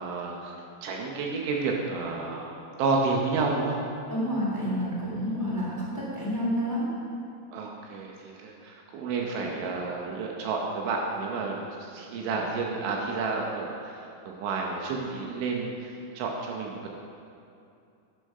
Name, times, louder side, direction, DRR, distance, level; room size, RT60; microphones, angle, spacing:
voice 1, 0.0-3.8 7.5-16.9, right 4 dB, 75° right, 0 dB, 3.2 m, -31 dB
voice 2, 4.1-6.9, equal, 10° left, -6 dB, 1.0 m, -29 dB
11.5 x 10.0 x 5.5 m, 2.6 s
omnidirectional pair, 5.8 m